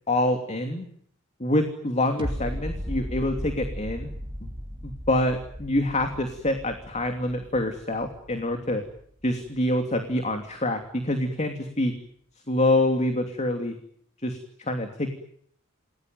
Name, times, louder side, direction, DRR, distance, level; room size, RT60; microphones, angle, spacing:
voice 1, 0.1-0.8 1.4-4.1 4.4-4.5 4.8-8.8 9.2-11.9 12.5-13.7 14.2-15.1, left 1 dB, 35° left, 5 dB, 3.0 m, -26 dB
sound 1, 2.2-9.2 9.7-9.8, equal, 25° right, 3.5 m, -36 dB
29.5 x 20.0 x 9.3 m, 0.67 s
head